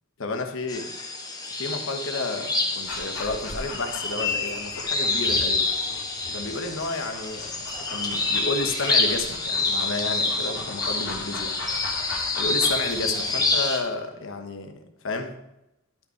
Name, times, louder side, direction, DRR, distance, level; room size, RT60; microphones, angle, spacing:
voice 1, 0.2-0.9 1.5-5.7 6.3-11.6 12.3-14.7 15.0-15.4, left 3 dB, 65° left, 5 dB, 1.2 m, -31 dB
sound 1, 0.7-13.8, left 3 dB, 20° left, 1.3 m, -27 dB
Dog, 2.8-13.6, left 2 dB, 80° left, 3.0 m, -40 dB
12.0 x 5.6 x 4.6 m, 0.88 s
head